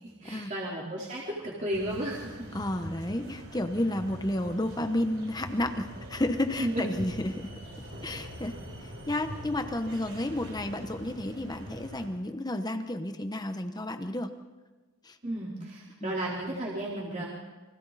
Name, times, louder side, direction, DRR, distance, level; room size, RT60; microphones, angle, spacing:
voice 1, 0.0-2.5 6.6-6.9 15.2-17.3, right 1 dB, 35° right, -5 dB, 4.1 m, -33 dB
sound 1, 1.7-12.1, equal, 70° right, 7.7 m, -43 dB
voice 2, 2.5-7.5 8.0-8.6 8.8-14.3 15.0-15.2 16.0-16.1, left 1 dB, 20° left, 7 dB, 1.1 m, -31 dB
29.0 x 24.5 x 4.2 m, 1.2 s
head